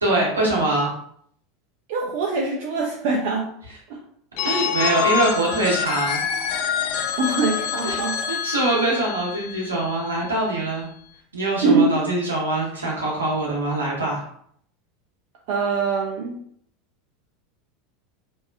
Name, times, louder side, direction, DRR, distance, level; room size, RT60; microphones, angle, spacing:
voice 1, 0.0-0.9 4.4-6.2 7.8-8.0 8.3-10.9 11.3-14.2, right 2 dB, 80° right, -4 dB, 0.9 m, -23 dB
voice 2, 1.9-3.5 3.9-4.0 7.2-8.1 8.7-8.9 11.6-11.9 15.5-16.4, right 4 dB, 55° right, -1 dB, 0.4 m, -23 dB
Telephone, 4.4-10.1, left 7 dB, 55° left, 0.3 m, -26 dB
2.7 x 2.2 x 2.3 m, 0.65 s
figure-of-eight pair, 80°, 0 cm